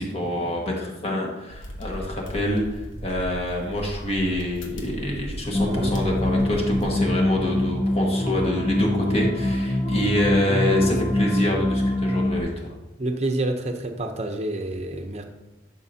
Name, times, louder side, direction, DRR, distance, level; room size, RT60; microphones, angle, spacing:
voice 1, 0.0-12.7, left 1 dB, 30° left, -1 dB, 1.6 m, -26 dB
sound 1, 1.5-6.9, equal, 85° left, 1.1 m, -37 dB
sound 2, 5.5-12.4, left 1 dB, 15° left, 0.6 m, -24 dB
voice 2, 5.6-6.0 13.0-15.2, right 1 dB, 35° right, 5 dB, 0.8 m, -28 dB
11.0 x 5.9 x 2.8 m, 1.0 s
head